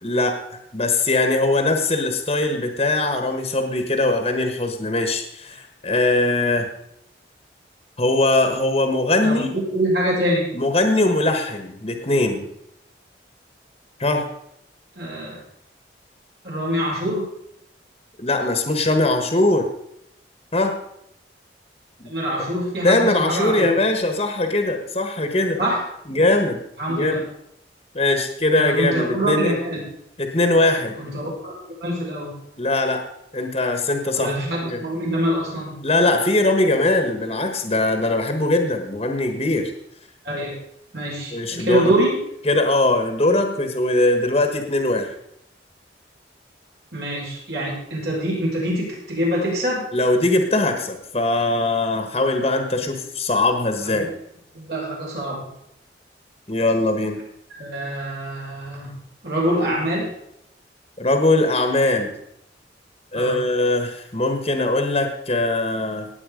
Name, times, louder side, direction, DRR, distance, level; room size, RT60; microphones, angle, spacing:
voice 1, 0.0-6.7 8.0-9.5 10.5-12.5 14.0-14.2 18.2-19.7 20.5-20.8 22.0-22.1 22.8-25.6 26.1-26.6 26.9-27.2 27.9-29.5 30.2-30.9 32.6-33.0 33.3-34.3 34.6-34.8 35.8-39.7 41.3-41.9 42.4-45.1 49.9-54.1 56.5-57.2 61.0-62.1 63.1-66.1, left 2 dB, 35° left, 6 dB, 1.4 m, -21 dB
voice 2, 9.2-10.7 14.9-15.4 16.4-17.3 22.0-23.8 25.6-25.8 26.1-26.3 26.8-27.2 28.6-29.8 31.0-31.5 31.8-32.3 34.1-35.8 40.2-40.5 40.9-42.2 46.9-49.8 52.8-53.0 53.8-54.1 54.5-55.5 57.6-59.0 59.2-60.1 63.1-63.4, equal, 65° right, -4 dB, 6.6 m, -25 dB
18.0 x 8.3 x 5.2 m, 0.75 s
head